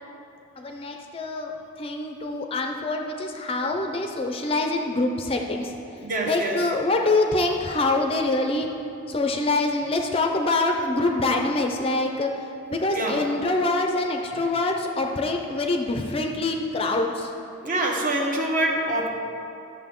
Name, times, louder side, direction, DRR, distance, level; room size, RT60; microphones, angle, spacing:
voice 1, 0.6-5.8 6.3-8.7 9.1-12.3 12.7-17.3, left 2 dB, 25° left, 3 dB, 0.4 m, -25 dB
voice 2, 6.0-6.6 12.9-13.2 17.6-19.1, right 1 dB, 40° right, 0 dB, 1.1 m, -25 dB
12.0 x 6.9 x 3.7 m, 2.8 s
head